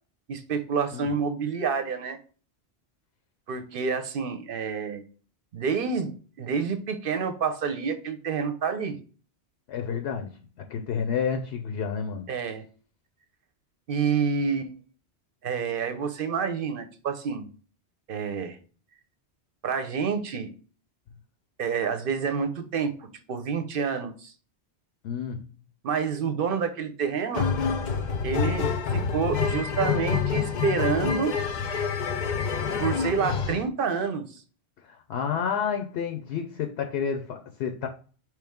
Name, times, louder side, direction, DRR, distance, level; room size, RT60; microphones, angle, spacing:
voice 1, 0.3-2.2 3.5-5.0 5.5-6.1 6.4-9.0 12.3-12.6 13.9-14.7 15.4-17.5 18.1-18.6 19.6-20.5 21.6-24.3 25.8-27.5 28.2-31.3 32.8-34.4, right 6 dB, 60° right, 0.8 m, -28 dB
voice 2, 9.7-10.4 10.7-12.3 25.0-25.5 34.8-37.9, left 7 dB, 75° left, 0.8 m, -30 dB
sound 1, 27.3-33.6, left 6 dB, 55° left, 0.6 m, -27 dB
4.8 x 3.1 x 3.5 m
omnidirectional pair, 1.1 m